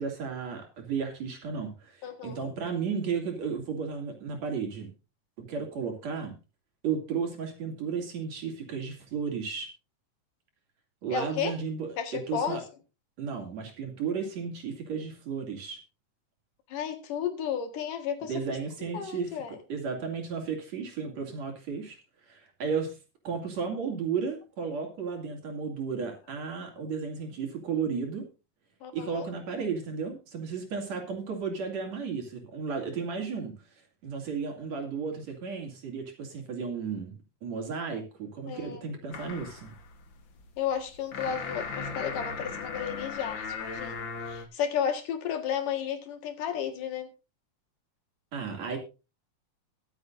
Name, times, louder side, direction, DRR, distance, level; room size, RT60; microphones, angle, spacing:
voice 1, 0.0-4.9 5.4-6.3 6.8-9.7 11.0-12.6 13.2-15.8 18.3-19.4 19.7-22.0 22.3-23.0 23.2-28.3 28.9-33.6 34.0-39.7 48.3-48.8, right 5 dB, 55° right, 2 dB, 3.9 m, -34 dB
voice 2, 2.0-2.5 11.1-11.5 12.0-12.6 16.7-18.3 18.9-19.6 28.8-29.3 38.5-38.9 40.6-47.1, left 8 dB, 85° left, 6 dB, 3.3 m, -33 dB
sound 1, 39.1-44.5, left 5 dB, 50° left, 1.5 m, -38 dB
23.0 x 8.0 x 2.6 m, 0.30 s
omnidirectional pair, 3.6 m